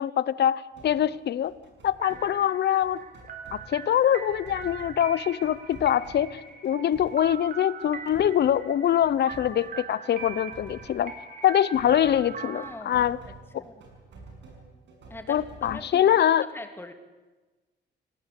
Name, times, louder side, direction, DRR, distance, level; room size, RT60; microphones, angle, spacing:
voice 1, 0.0-1.5 1.8-3.0 3.5-11.1 11.4-13.2 13.5-13.6 15.3-16.4, left 10 dB, 65° left, 18 dB, 0.9 m, -24 dB
sound 1, 0.7-15.8, right 3 dB, 90° right, 6.7 m, -50 dB
sound 2, 2.0-12.7, right 5 dB, 50° right, 3.8 m, -41 dB
voice 2, 12.4-13.0 13.6-13.8 15.1-15.4 15.6-16.2 16.5-16.9, left 1 dB, 10° left, 6 dB, 2.3 m, -42 dB
27.0 x 18.0 x 8.4 m, 1.2 s
cardioid pair, 135°, 18 cm